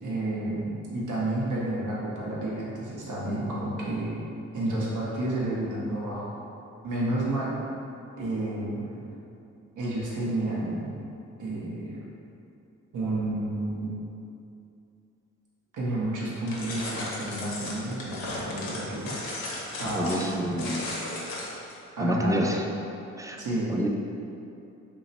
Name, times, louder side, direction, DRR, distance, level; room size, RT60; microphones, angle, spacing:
voice 1, 0.0-4.2 4.5-6.3 6.8-7.5 8.2-9.0 9.8-10.9 11.4-12.0 12.9-14.0 15.7-19.2 19.8-20.6 21.9-22.5 23.4-23.8, right 1 dB, 55° right, -6 dB, 1.1 m, -30 dB
sound 1, 16.5-21.8, left 2 dB, 70° left, 0.9 m, -36 dB
voice 2, 19.9-20.8 22.0-22.6 23.2-23.4 23.7-23.9, equal, 10° right, 1 dB, 0.4 m, -28 dB
2.9 x 2.8 x 4.1 m, 2.7 s
hypercardioid pair, 40°, 37 cm